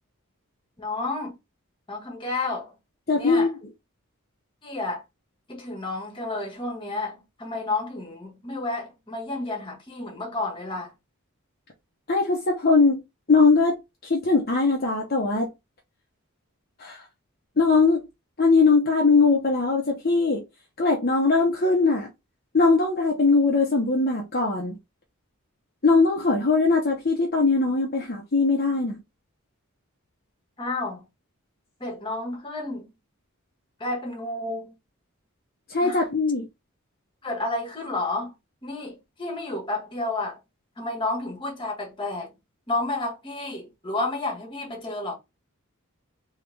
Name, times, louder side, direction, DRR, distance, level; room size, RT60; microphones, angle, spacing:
voice 1, 0.8-1.3 1.9-2.7 3.2-3.5 4.6-5.0 5.5-10.9 30.6-31.0 31.8-32.9 33.8-34.7 35.8-36.0 37.2-38.3 38.6-40.4 40.8-42.3 42.7-45.1, left 2 dB, 25° left, 1.7 m, -31 dB
voice 2, 3.1-3.5 12.1-13.0 13.3-13.8 14.0-15.5 16.8-17.0 17.6-18.0 18.4-20.4 20.8-22.1 22.5-24.8 25.8-29.0 35.7-36.5, left 3 dB, 45° left, 1.0 m, -21 dB
3.7 x 3.5 x 3.5 m
head